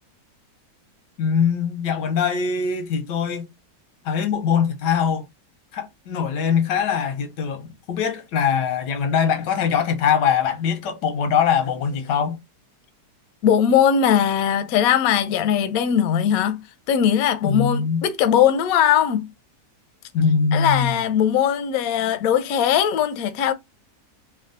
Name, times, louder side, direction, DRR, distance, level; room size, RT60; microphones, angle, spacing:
voice 1, 1.2-3.5 4.0-5.3 5.7-12.4 17.4-18.1 20.1-20.9 22.0-22.1, left 7 dB, 90° left, 1.4 m, -22 dB
voice 2, 13.4-16.6 16.9-19.3 20.5-23.5, left 9 dB, 70° left, 0.9 m, -19 dB
3.6 x 2.2 x 2.5 m
omnidirectional pair, 1.9 m